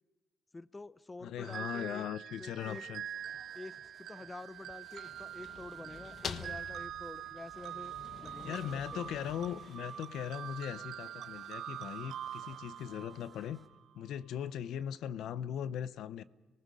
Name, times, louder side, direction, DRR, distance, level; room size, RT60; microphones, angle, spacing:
voice 1, 0.5-2.1 2.4-2.8 3.5-3.8 4.1-7.9 8.2-9.0, left 2 dB, 20° left, 0.6 m, -48 dB
voice 2, 1.2-3.0 8.4-13.6 13.9-16.2, left 9 dB, 80° left, 0.7 m, -39 dB
sound 1, 1.4-13.8, right 10 dB, 75° right, 0.7 m, -45 dB
sound 2, 2.6-13.7, right 1 dB, 5° right, 2.7 m, -62 dB
sound 3, 4.6-10.6, left 6 dB, 60° left, 1.2 m, -48 dB
26.0 x 19.0 x 6.4 m
cardioid pair, 90°, 0 cm